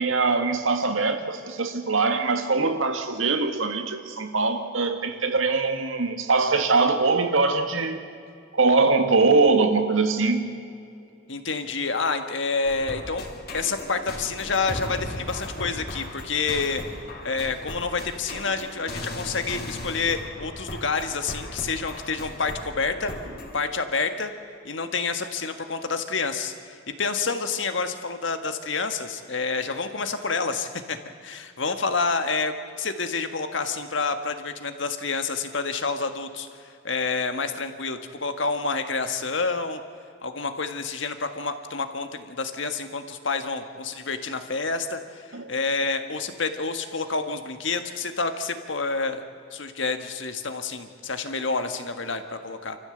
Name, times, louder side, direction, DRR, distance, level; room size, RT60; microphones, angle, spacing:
voice 1, 0.0-8.1 8.5-10.5 45.3-45.5, right 3 dB, 85° right, 7 dB, 1.9 m, -22 dB
voice 2, 11.3-13.3 13.5-16.8 17.2-23.1 23.5-24.3 24.6-39.8 40.2-49.2 49.5-52.8, left 4 dB, 70° left, 7 dB, 1.7 m, -28 dB
sound 1, 12.6-23.6, left 1 dB, 50° left, 3.4 m, -37 dB
28.0 x 14.5 x 8.0 m, 2.5 s
head